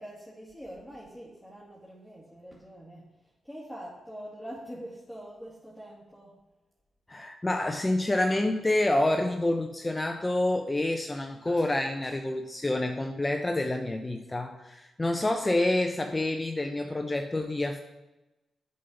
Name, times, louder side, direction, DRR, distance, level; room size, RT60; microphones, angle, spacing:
voice 1, 0.0-6.4, equal, ahead, -6 dB, 2.4 m, -44 dB
voice 2, 7.1-17.8, left 1 dB, 25° left, 5 dB, 0.8 m, -28 dB
7.5 x 5.4 x 6.9 m, 1.0 s
supercardioid pair, 45°, 0 cm